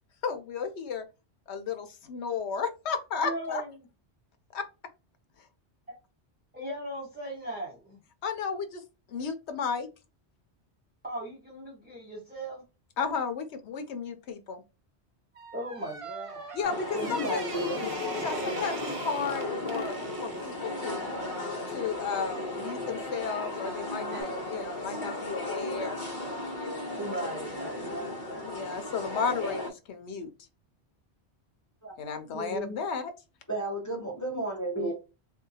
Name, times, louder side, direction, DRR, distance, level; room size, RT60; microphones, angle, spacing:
voice 1, 0.2-1.0 1.5-3.6 4.5-4.6 5.4-5.5 8.2-8.8 9.1-9.9 13.0-14.6 16.5-17.4 18.2-19.9 20.2-21.1 21.7-26.0 28.4-30.3 32.0-33.1, left 5 dB, 75° left, 0.9 m, -33 dB
voice 2, 3.2-3.7 6.5-8.0 11.0-12.6 15.5-16.6 17.5-17.6 27.0-28.5 34.7-34.9, right 1 dB, 10° right, 1.0 m, -38 dB
sound 1, 15.3-20.6 23.3-23.6 24.1-24.2, right 4 dB, 45° right, 0.4 m, -43 dB
sound 2, 16.6-29.7, left 2 dB, 45° left, 1.1 m, -35 dB
voice 3, 16.9-17.9 31.8-31.9 32.3-32.8 33.5-34.9, right 1 dB, 15° left, 0.9 m, -33 dB
3.6 x 2.7 x 2.7 m
omnidirectional pair, 1.1 m